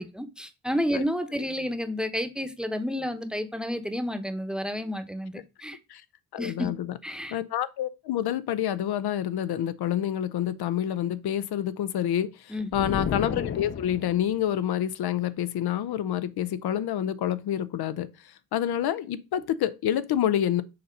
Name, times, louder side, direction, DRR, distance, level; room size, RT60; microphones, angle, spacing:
voice 1, 0.0-5.8 6.4-6.7 7.0-7.3 12.5-12.7, equal, ahead, 0.9 m, -31 dB
voice 2, 6.3-6.9 7.3-20.6, left 10 dB, 75° left, 0.6 m, -28 dB
sound 1, 12.7-14.4, left 7 dB, 35° left, 0.6 m, -32 dB
6.7 x 2.8 x 5.2 m
cardioid pair, 75°, 39 cm